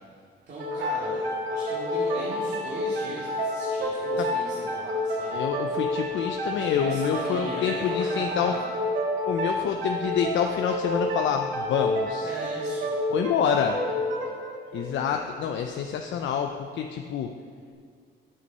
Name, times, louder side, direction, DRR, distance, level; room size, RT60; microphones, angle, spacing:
voice 1, 0.5-5.4 6.5-8.7 12.2-12.9 16.2-16.3, right 1 dB, 55° right, -8 dB, 2.4 m, -38 dB
sound 1, 0.6-15.9, left 1 dB, 85° right, 1.8 m, -29 dB
voice 2, 5.3-8.6 9.3-12.3 13.1-13.8 14.7-17.3, left 8 dB, 70° left, 4 dB, 0.6 m, -27 dB
9.5 x 8.2 x 5.5 m, 2.1 s
cardioid pair, 90°, 20 cm